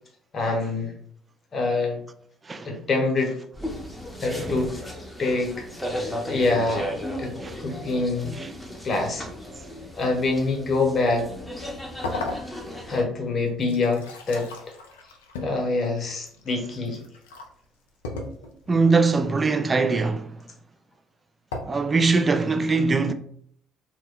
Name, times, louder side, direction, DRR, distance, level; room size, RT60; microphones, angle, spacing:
voice 1, 0.3-0.9 1.5-2.0 2.6-3.4 4.2-4.8 5.2-5.6 6.0-6.9 7.2-7.3 7.6-8.4 8.8-9.2 9.9-11.3 12.7-14.5 15.4-17.0, left 3 dB, 45° left, 0.8 m, -25 dB
sound 1, 3.5-13.0, equal, 5° left, 0.7 m, -35 dB
sound 2, 12.0-12.9 13.5-17.5 18.0-18.8 21.5-21.6, left 2 dB, 90° left, 0.4 m, -36 dB
voice 2, 18.7-20.3 21.7-23.1, right 4 dB, 30° right, 0.3 m, -22 dB
2.2 x 2.1 x 3.5 m
hypercardioid pair, 60°, 0 cm